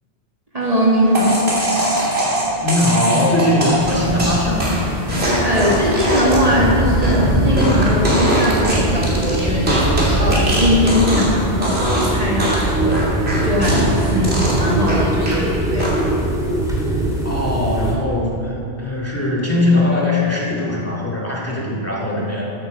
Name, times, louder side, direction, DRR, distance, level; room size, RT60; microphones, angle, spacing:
voice 1, 0.5-1.6 5.4-9.7 10.2-13.1 13.4-15.9, equal, 35° right, -4 dB, 1.7 m, -20 dB
sound 1, 1.1-11.4 11.6-12.1 12.4-15.4 15.8-16.2, right 1 dB, 75° right, 2.9 m, -21 dB
voice 2, 2.6-4.8 17.2-22.5, left 1 dB, 15° left, -4 dB, 2.2 m, -20 dB
sound 2, 3.8-17.9, right 1 dB, 5° right, 1.9 m, -22 dB
13.5 x 9.2 x 5.2 m, 2.8 s
omnidirectional pair, 1.1 m